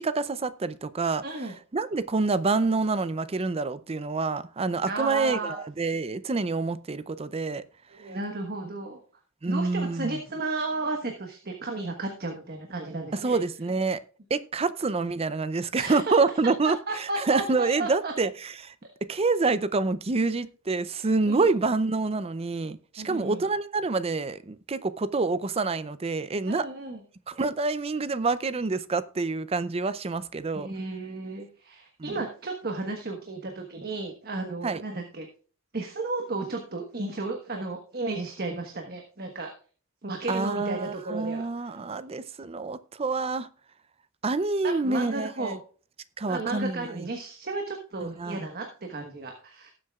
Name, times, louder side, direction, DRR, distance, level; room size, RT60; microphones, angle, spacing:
voice 1, 0.0-1.2 1.7-7.6 9.4-10.2 13.1-14.0 14.3-18.7 19.1-26.7 27.3-30.7 32.0-32.2 34.6-34.8 40.3-43.5 44.2-45.6 46.2-46.9 48.0-48.5, right 3 dB, 30° right, 0.5 m, -27 dB
voice 2, 1.2-1.5 4.8-5.6 7.9-9.0 9.5-13.4 15.7-16.1 16.6-17.4 17.8-18.1 21.3-21.5 23.0-23.4 26.4-27.0 30.5-35.3 35.7-39.5 40.0-41.8 44.6-45.6 46.2-49.7, right 3 dB, 50° right, 1.4 m, -33 dB
18.5 x 7.8 x 2.4 m
head